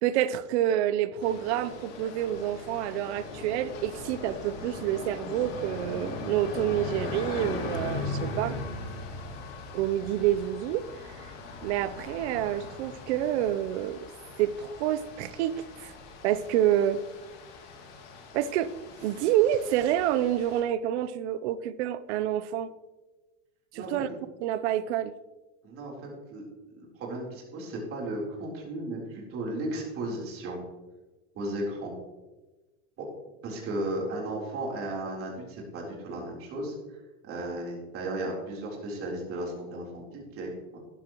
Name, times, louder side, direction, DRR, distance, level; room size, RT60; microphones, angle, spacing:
voice 1, 0.0-8.6 9.7-11.3 11.6-14.1 14.4-16.0 16.2-17.0 18.3-18.7 19.0-22.7 23.7-24.1 24.4-25.1, right 11 dB, 70° right, 16 dB, 0.7 m, -28 dB
sound 1, 1.2-20.6, left 3 dB, 50° left, 2.7 m, -39 dB
voice 2, 25.6-30.6 31.3-31.9 33.0-33.1 33.4-40.8, right 1 dB, 40° right, -2 dB, 3.8 m, -35 dB
13.0 x 11.0 x 3.1 m, 1.1 s
supercardioid pair, 145°, 35 cm